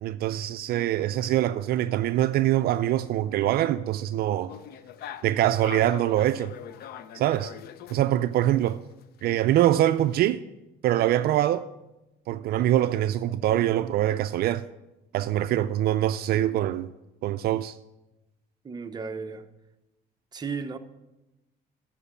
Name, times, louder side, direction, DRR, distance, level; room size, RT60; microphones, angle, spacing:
voice 1, 0.0-4.5 5.2-6.5 7.1-7.5 7.9-8.8 9.2-10.4 10.8-11.7 12.3-14.6 15.1-16.9 17.2-17.8, right 13 dB, 65° right, 0.4 m, -24 dB
sound 1, 4.5-8.7 9.0-10.3, left 9 dB, 65° left, 0.6 m, -43 dB
voice 2, 18.6-19.5 20.3-20.8, right 5 dB, 25° right, 0.7 m, -34 dB
12.5 x 4.5 x 7.3 m
cardioid pair, 110°, 17 cm